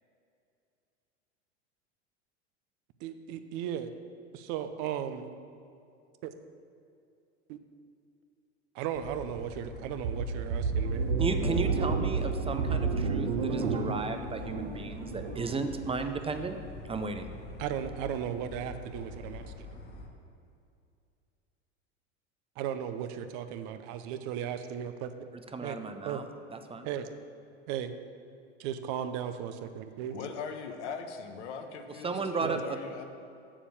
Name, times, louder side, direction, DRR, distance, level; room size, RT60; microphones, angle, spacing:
voice 1, 3.0-3.9 4.3-5.3 6.2-6.3 7.5-7.6 8.7-11.1 17.6-19.7 22.6-25.1 25.6-25.8 26.0-26.2 26.8-27.1 27.7-27.9 28.6-30.1 32.1-32.6, right 9 dB, 55° right, 10 dB, 0.8 m, -36 dB
sound 1, 8.9-20.1, left 3 dB, 30° left, 1.6 m, -45 dB
sound 2, 10.0-15.7, right 4 dB, 70° right, 1.3 m, -30 dB
voice 2, 11.2-16.6 16.8-17.3 25.5-26.3 26.5-26.9 32.0-32.8, right 4 dB, 15° right, 7 dB, 0.6 m, -34 dB
voice 3, 30.1-33.0, left 6 dB, 70° left, 6 dB, 1.2 m, -40 dB
7.2 x 7.0 x 7.2 m, 2.5 s
hypercardioid pair, 95°, 36 cm